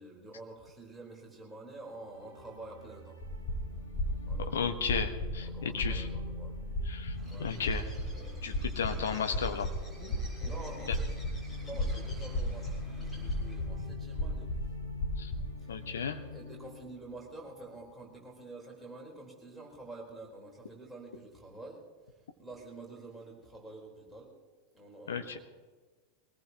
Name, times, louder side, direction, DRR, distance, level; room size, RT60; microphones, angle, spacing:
voice 1, 0.0-3.2 4.3-4.7 5.4-6.6 7.2-7.5 10.4-11.0 11.4-14.5 15.6-15.7 16.3-21.8 22.4-24.3 24.7-25.4, right 2 dB, 5° right, -3 dB, 4.4 m, -48 dB
sound 1, 1.9-17.9, left 3 dB, 90° left, 4.4 m, -45 dB
sound 2, 3.2-15.7, left 1 dB, 35° left, 4.4 m, -36 dB
voice 2, 4.5-6.1 6.8-7.9 8.4-9.7 10.9-11.0 15.2-15.3 15.7-16.2 25.1-25.4, left 6 dB, 65° left, 7 dB, 1.4 m, -34 dB
Bird, 7.1-13.7, right 1 dB, 15° left, 6.3 m, -51 dB
23.5 x 18.5 x 3.1 m, 1.3 s
figure-of-eight pair, 90°, 0 cm